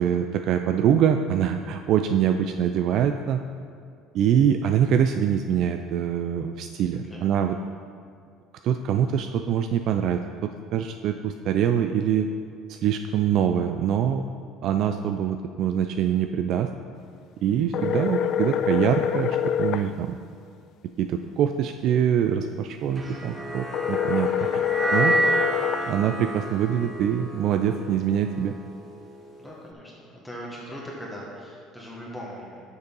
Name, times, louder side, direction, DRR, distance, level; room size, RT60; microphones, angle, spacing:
voice 1, 0.0-3.4 4.1-7.6 8.6-12.3 12.7-14.2 14.6-16.7 17.4-20.1 21.0-24.6 24.9-25.2 25.9-28.5, right 9 dB, 60° right, 7 dB, 0.3 m, -24 dB
sound 1, 17.7-19.9 23.7-25.9, left 10 dB, 55° left, 0.3 m, -25 dB
voice 2, 22.9-23.4 29.4-32.6, equal, 5° left, -5 dB, 1.4 m, -40 dB
sound 2, 23.0-29.3, right 2 dB, 25° right, 1.0 m, -29 dB
6.6 x 5.2 x 5.4 m, 2.3 s
supercardioid pair, 105°, 0 cm